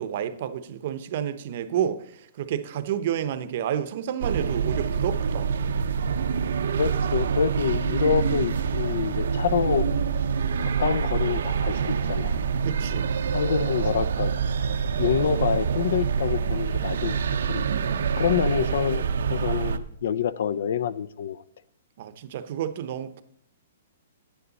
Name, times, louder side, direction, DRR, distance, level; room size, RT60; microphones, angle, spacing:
voice 1, 0.0-2.0 2.4-5.5 12.6-13.0 17.6-18.1 22.0-23.2, right 10 dB, 45° right, 0.7 m, -30 dB
sound 1, 4.2-19.8, right 6 dB, 80° right, 0.7 m, -26 dB
voice 2, 6.8-9.9 10.6-12.4 13.3-14.3 15.0-17.2 17.5-17.7 18.2-19.0 19.3-21.4, left 8 dB, 65° left, 0.4 m, -26 dB
9.7 x 9.6 x 4.0 m
hypercardioid pair, 170°, 0 cm